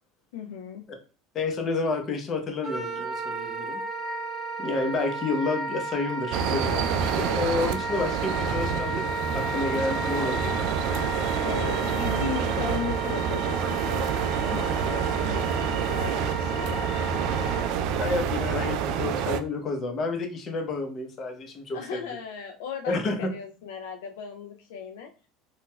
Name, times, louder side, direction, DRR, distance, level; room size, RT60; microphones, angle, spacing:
voice 1, 0.3-0.8 11.4-17.0 21.7-25.3, left 7 dB, 75° left, 3 dB, 0.3 m, -37 dB
voice 2, 1.3-3.8 4.6-9.0 9.3-10.7 18.0-22.1 22.9-23.2, left 3 dB, 40° left, 4 dB, 0.8 m, -30 dB
Wind instrument woodwind instrument, 2.6-17.7, right 3 dB, 20° left, 1.3 m, -33 dB
sound 1, 6.3-19.4, right 7 dB, 65° right, 0.3 m, -28 dB
4.0 x 2.3 x 2.2 m, 0.38 s
hypercardioid pair, 90°, 0 cm